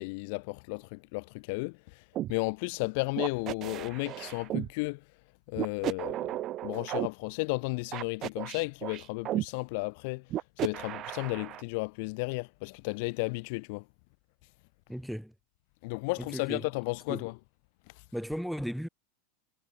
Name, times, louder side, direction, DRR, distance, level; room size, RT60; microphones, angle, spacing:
voice 1, 0.0-5.0 5.5-13.9 15.8-17.4 17.9-18.0, left 29 dB, 60° left, 0.5 m, -34 dB
sound 1, 2.1-2.3 3.2-4.7 5.5-7.1 7.9-9.4 10.3-11.6, right 13 dB, 40° right, 0.9 m, -34 dB
voice 2, 14.9-15.3 16.3-16.6 17.1-17.2 18.1-18.9, equal, ahead, 1.4 m, -35 dB
hypercardioid pair, 105°, 0 cm